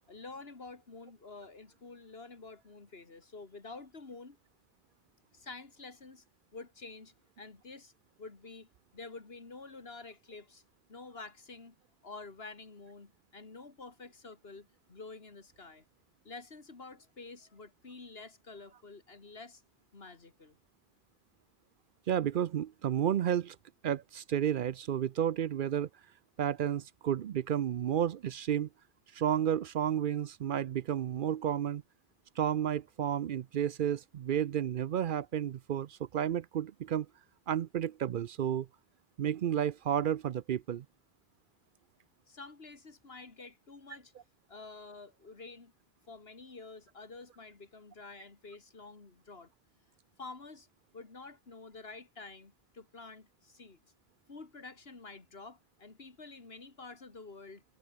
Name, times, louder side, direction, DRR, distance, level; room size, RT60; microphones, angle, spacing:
voice 1, 0.1-4.4 5.3-6.2 6.5-7.9 8.2-10.6 10.9-11.8 12.0-15.8 16.2-19.6 19.9-20.6 42.3-44.1 44.5-45.7 46.1-49.5 50.2-50.7 50.9-53.8 54.3-57.6, left 3 dB, 75° left, 2.6 m, -49 dB
voice 2, 22.1-23.6 23.8-25.9 26.4-28.7 29.1-31.8 32.4-37.1 37.5-38.7 39.2-40.9, right 10 dB, 60° right, 0.7 m, -31 dB
omnidirectional pair, 1.0 m